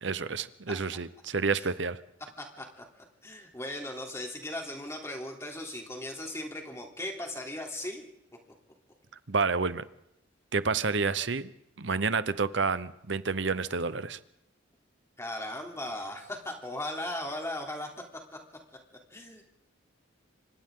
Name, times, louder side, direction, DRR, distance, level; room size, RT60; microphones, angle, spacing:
voice 1, 0.0-2.0 9.3-9.8 10.5-11.5 11.8-14.2, right 4 dB, 65° right, 14 dB, 0.9 m, -29 dB
voice 2, 2.4-2.8 3.2-8.1 15.2-17.9 19.1-19.4, left 1 dB, 15° left, 1 dB, 3.3 m, -37 dB
27.0 x 25.0 x 3.9 m, 0.79 s
head